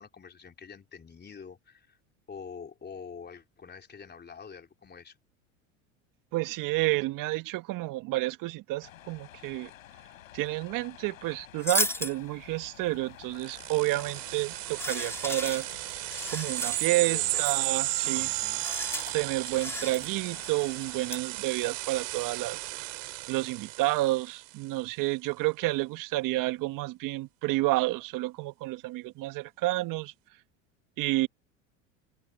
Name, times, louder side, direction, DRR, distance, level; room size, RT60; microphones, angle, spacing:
voice 1, 0.0-2.0 2.3-5.2 17.1-17.5 18.1-18.7, left 6 dB, 25° left, 3.7 m, -46 dB
voice 2, 6.3-9.7 10.3-15.7 16.3-18.3 19.1-22.6 23.3-30.1 31.0-31.3, right 19 dB, 55° right, 1.8 m, -30 dB
sound 1, 8.8-21.2, left 13 dB, 85° left, 6.3 m, -51 dB
sound 2, 11.6-12.1 14.0-14.2 14.7-17.1 17.3-17.6 18.0-18.2 18.5-19.1 19.5-20.1 20.4-20.7 21.1-21.2, left 1 dB, 5° left, 2.5 m, -34 dB
sound 3, 13.4-24.5, right 23 dB, 70° right, 2.5 m, -34 dB
open air
hypercardioid pair, 80°, 39 cm